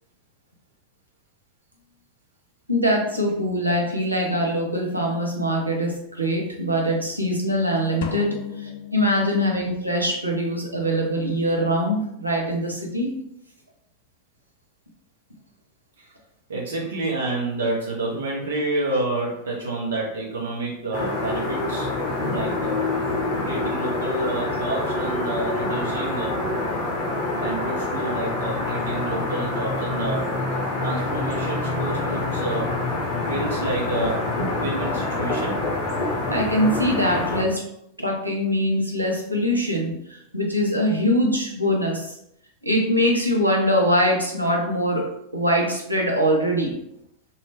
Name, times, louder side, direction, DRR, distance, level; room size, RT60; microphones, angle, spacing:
voice 1, 2.7-13.1 36.3-37.6 38.0-42.2 42.6-45.1 45.3-46.7, equal, 85° right, -1 dB, 0.7 m, -23 dB
sound 1, 8.0-9.8, left 8 dB, 55° left, 0.3 m, -36 dB
voice 2, 16.5-21.9 22.2-22.8 23.4-26.4 27.3-30.3 30.8-32.7 33.3-34.2 34.6-35.6, right 2 dB, 65° right, -3 dB, 0.9 m, -29 dB
sound 2, 20.9-37.4, left 2 dB, 40° left, 0.7 m, -26 dB
2.6 x 2.4 x 3.2 m, 0.77 s
figure-of-eight pair, 90°, 0 cm